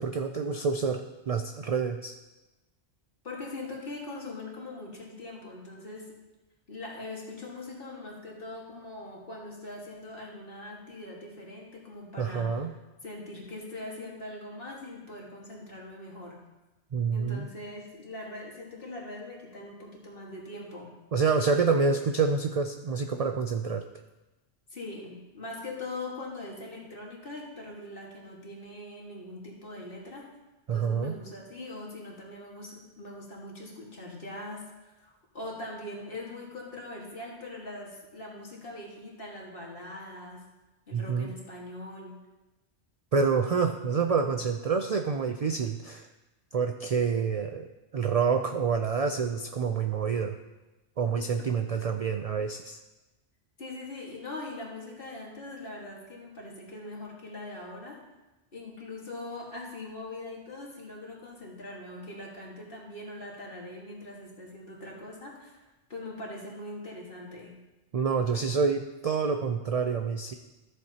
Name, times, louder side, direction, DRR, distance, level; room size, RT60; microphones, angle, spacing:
voice 1, 0.0-2.2 12.2-12.7 16.9-17.5 21.1-23.8 30.7-31.1 40.9-41.3 43.1-46.1 46.5-47.7 47.9-50.4 51.0-52.8 67.9-70.3, right 5 dB, 60° right, 6 dB, 0.4 m, -27 dB
voice 2, 3.2-6.1 6.7-12.6 13.0-16.4 17.1-20.9 24.7-30.3 30.7-40.5 40.9-42.2 51.4-51.5 53.6-58.0 58.5-65.6 65.9-67.6 68.3-68.4, left 2 dB, 55° left, -2 dB, 2.0 m, -42 dB
13.5 x 7.7 x 2.9 m, 1.1 s
omnidirectional pair, 1.2 m